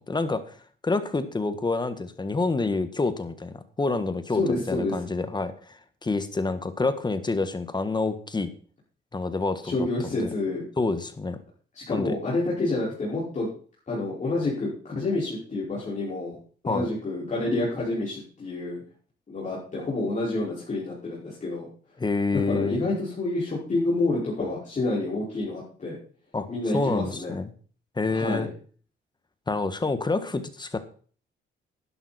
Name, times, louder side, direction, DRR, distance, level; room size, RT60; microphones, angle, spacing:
voice 1, 0.1-0.5 0.8-8.5 9.1-9.9 10.2-10.3 10.8-11.4 11.9-12.1 16.7-16.9 22.0-22.8 26.3-26.5 26.7-27.5 27.9-28.5 29.5-30.8, left 3 dB, 20° left, 11 dB, 1.6 m, -27 dB
voice 2, 4.3-4.9 9.6-10.6 11.8-13.5 13.9-16.4 16.6-18.8 19.3-21.7 22.3-26.0 26.5-27.3 28.1-28.5, left 2 dB, 35° left, -7 dB, 5.3 m, -28 dB
11.5 x 11.0 x 4.4 m, 0.42 s
cardioid pair, 90°, 20 cm